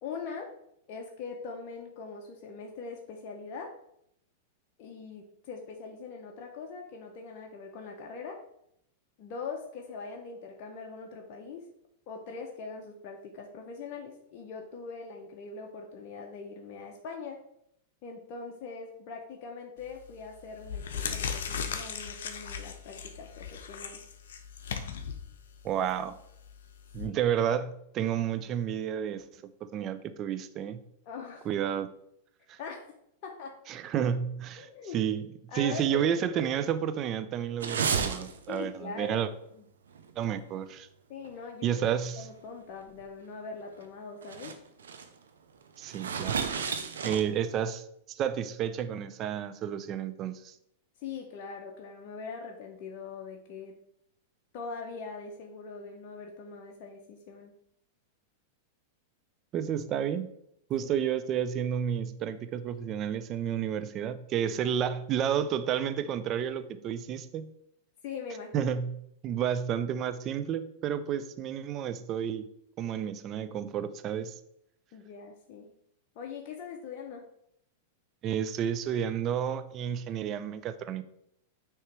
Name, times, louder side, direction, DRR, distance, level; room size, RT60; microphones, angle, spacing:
voice 1, 0.0-0.5 0.9-3.7 4.8-8.4 9.2-11.7 12.1-17.4 18.0-24.0 27.1-27.2 31.1-31.5 32.6-32.9 33.2-33.6 34.6-35.0 35.5-36.7 38.5-39.3 41.1-41.8 42.2-44.6 51.0-53.7 54.5-57.5 60.8-60.9 68.0-68.7 74.9-75.7 76.2-77.2, left 5 dB, 50° left, 1 dB, 0.8 m, -42 dB
sound 1, 19.8-20.1 20.6-27.1, left 7 dB, 80° left, 0.7 m, -37 dB
voice 2, 25.6-26.2 26.9-29.2 29.6-30.8 31.5-31.9 32.5-32.6 33.7-34.7 34.9-35.2 35.5-39.3 40.2-40.9 41.6-42.3 45.8-46.4 47.0-50.5 59.5-60.3 60.7-67.5 68.5-68.9 69.2-72.5 72.8-74.3 78.2-81.0, right 9 dB, 35° right, 12 dB, 0.5 m, -31 dB
sound 2, 37.6-38.6 38.9-39.1 39.9-40.1 40.5-40.6 41.2-41.3 43.0-43.1 43.8-43.9 44.2-44.5 44.8-45.1 45.8-47.4, right 6 dB, 90° right, 0.6 m, -32 dB
6.6 x 3.0 x 4.7 m, 0.74 s
hypercardioid pair, 120°, 0 cm